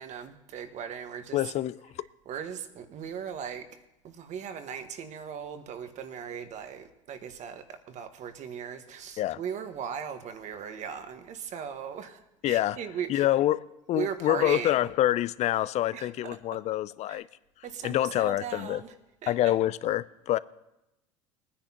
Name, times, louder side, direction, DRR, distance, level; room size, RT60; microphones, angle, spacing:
voice 1, 0.0-1.5 2.2-3.6 4.0-13.3 13.9-14.9 15.9-16.4 17.1-17.2 17.6-18.9 19.2-19.5, right 7 dB, 50° right, 1.5 m, -38 dB
voice 2, 1.3-1.8 9.2-9.4 12.4-12.8 13.1-13.6 13.9-17.3 17.8-18.8 19.3-20.4, left 13 dB, 45° left, 0.5 m, -26 dB
22.0 x 10.0 x 2.9 m
hypercardioid pair, 75°, 16 cm